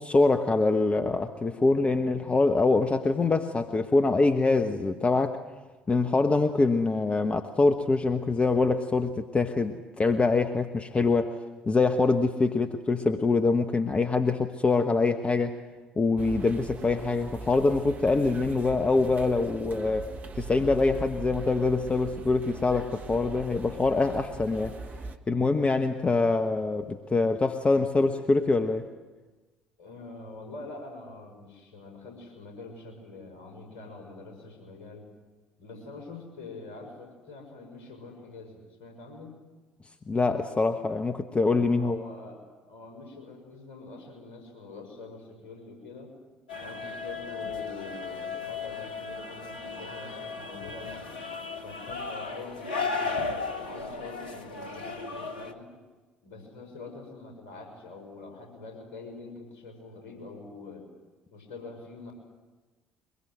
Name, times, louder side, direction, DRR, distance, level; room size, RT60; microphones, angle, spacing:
voice 1, 0.0-5.4 5.9-11.3 11.7-15.6 16.0-20.1 20.4-24.8 25.3-28.9 40.1-42.0, left 3 dB, 25° left, 7 dB, 1.2 m, -24 dB
sound 1, 16.2-25.2, right 4 dB, 35° right, 1.5 m, -41 dB
voice 2, 29.8-35.1 35.6-39.3 41.7-42.4 42.7-46.1 46.6-51.3 51.6-55.7 56.2-60.9 61.3-62.1, left 3 dB, 60° left, 3 dB, 6.2 m, -45 dB
sound 2, 46.5-55.5, left 4 dB, 80° left, 1.1 m, -35 dB
23.5 x 22.0 x 7.7 m, 1.3 s
figure-of-eight pair, 50°, 5 cm